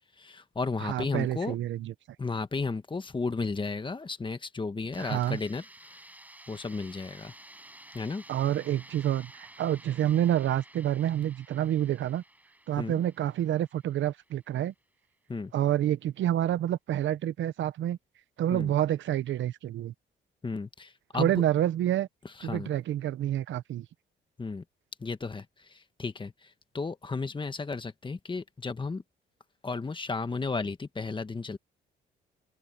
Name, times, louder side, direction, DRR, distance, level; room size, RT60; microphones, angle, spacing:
voice 1, 0.2-1.5 2.2-5.6 6.5-7.3 7.9-8.2 12.8-13.0 15.3-15.5 18.5-18.7 20.4-21.3 22.4-22.7 24.4-24.6 25.0-26.3 26.7-29.0 29.6-31.6, left 4 dB, 25° left, 1.5 m, -33 dB
voice 2, 0.8-1.9 5.0-5.4 8.3-12.2 12.7-14.7 15.5-18.0 18.4-19.9 21.1-22.1 22.4-23.9, right 11 dB, 70° right, 0.9 m, -28 dB
sound 1, 4.9-14.7, right 1 dB, 10° right, 6.1 m, -53 dB
open air
cardioid pair, 90°, 20 cm